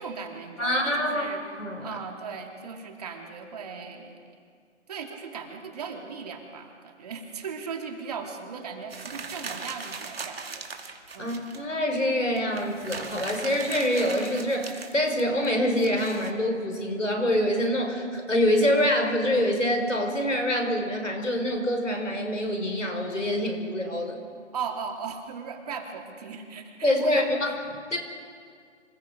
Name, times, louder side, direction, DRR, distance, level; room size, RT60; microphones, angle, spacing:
voice 1, 0.0-1.4 1.8-4.2 4.9-11.3 24.5-27.4, right 6 dB, 30° right, 2 dB, 2.8 m, -38 dB
voice 2, 0.6-1.3 1.6-2.0 11.2-24.2 26.8-27.5 27.9-28.0, left 1 dB, 90° left, 3 dB, 5.6 m, -25 dB
sound 1, 8.9-11.6 12.0-12.1 12.4-16.3, right 4 dB, 50° right, 2.6 m, -39 dB
26.5 x 26.0 x 5.2 m, 2.2 s
figure-of-eight pair, 155°, 37 cm